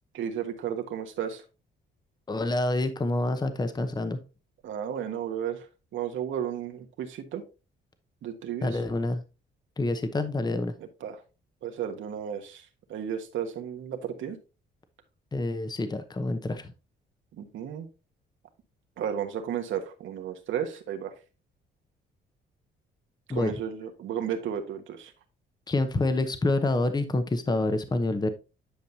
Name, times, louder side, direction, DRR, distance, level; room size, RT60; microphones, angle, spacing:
voice 1, 0.1-1.4 4.6-5.7 5.9-7.4 8.2-8.7 11.0-11.2 11.6-14.4 17.4-17.9 19.0-21.1 23.3-25.1, right 9 dB, 75° right, 6 dB, 1.4 m, -33 dB
voice 2, 2.3-4.2 8.6-9.2 9.8-10.7 15.3-16.7 23.3-23.6 25.7-28.3, left 2 dB, 20° left, 10 dB, 0.9 m, -27 dB
10.0 x 5.2 x 2.8 m, 0.29 s
cardioid pair, 90°, 20 cm